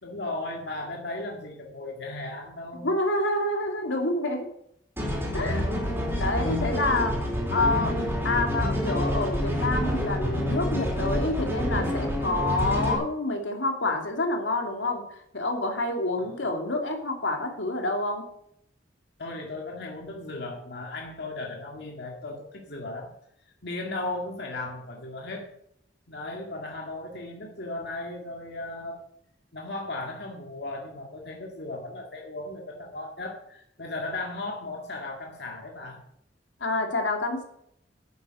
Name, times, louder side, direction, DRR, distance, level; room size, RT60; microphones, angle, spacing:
voice 1, 0.0-2.9 16.2-16.4 19.2-23.1 23.6-25.5 26.1-29.0 29.5-36.0, left 2 dB, 60° left, 0 dB, 2.0 m, -36 dB
voice 2, 2.8-4.5 5.3-5.8 6.1-7.2 7.5-8.0 8.2-15.0 15.3-18.3 36.6-37.4, left 2 dB, 85° left, 3 dB, 2.6 m, -27 dB
sound 1, 5.0-13.0, equal, 15° right, 4.4 m, -27 dB
11.0 x 8.6 x 6.4 m, 0.72 s
head